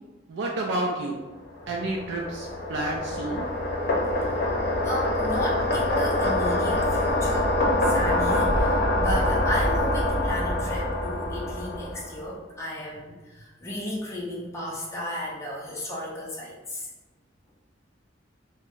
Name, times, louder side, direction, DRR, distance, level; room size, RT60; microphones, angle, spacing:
voice 1, 0.3-1.2 1.7-3.5, right 2 dB, 65° right, -1 dB, 0.3 m, -30 dB
sound 1, 1.5-12.2, left 1 dB, 55° left, 0.7 m, -25 dB
voice 2, 4.8-16.9, left 1 dB, 15° left, -5 dB, 0.5 m, -33 dB
2.5 x 2.1 x 3.6 m, 1.2 s
head